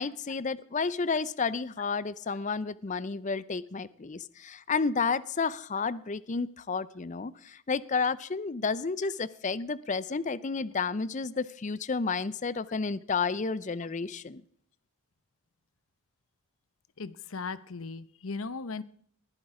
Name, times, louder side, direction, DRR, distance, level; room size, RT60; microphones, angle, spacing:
voice 1, 0.0-14.4, left 4 dB, 35° left, 18 dB, 0.5 m, -31 dB
voice 2, 17.0-18.8, left 4 dB, 65° left, 16 dB, 0.8 m, -37 dB
20.0 x 11.5 x 4.9 m, 0.62 s
head